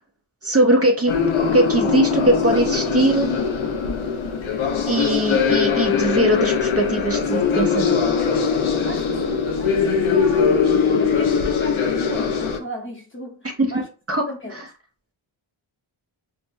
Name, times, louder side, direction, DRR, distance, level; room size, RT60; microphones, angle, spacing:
voice 1, 0.4-1.1 1.5-3.3 4.9-8.0 13.6-13.7 14.1-14.2, right 1 dB, 30° right, 0.7 m, -20 dB
sound 1, 1.1-12.6, left 6 dB, 80° left, 0.8 m, -21 dB
voice 2, 8.9-13.4 13.7-13.9 14.3-14.6, left 2 dB, 25° left, 0.9 m, -35 dB
5.8 x 2.1 x 2.6 m
wide cardioid pair, 95°, 48 cm